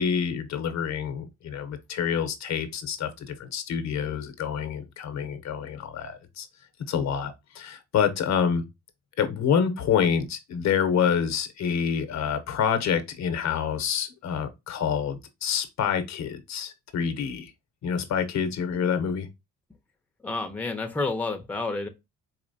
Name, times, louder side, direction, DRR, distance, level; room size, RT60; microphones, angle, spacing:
voice 1, 0.0-6.5 6.9-8.6 9.2-17.5 17.8-19.3, left 7 dB, 65° left, 0.8 m, -27 dB
voice 2, 20.2-21.9, left 3 dB, 5° left, 0.7 m, -29 dB
4.2 x 2.9 x 2.7 m
cardioid pair, 90°, 30 cm